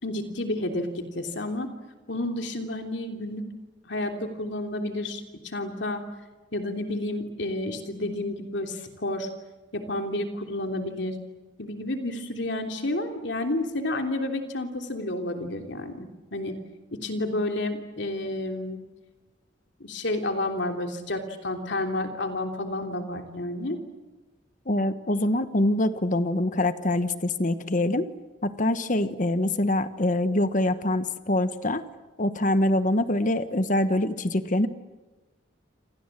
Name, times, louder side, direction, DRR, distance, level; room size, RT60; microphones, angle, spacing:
voice 1, 0.0-1.7 2.1-3.5 3.9-6.0 6.5-9.3 9.7-11.2 11.6-16.6 16.9-18.8 19.8-23.8, left 1 dB, 65° left, 4 dB, 3.2 m, -30 dB
voice 2, 24.7-28.1 28.4-31.8 32.2-34.7, left 1 dB, 45° left, 10 dB, 1.3 m, -24 dB
28.0 x 28.0 x 7.6 m, 1.2 s
head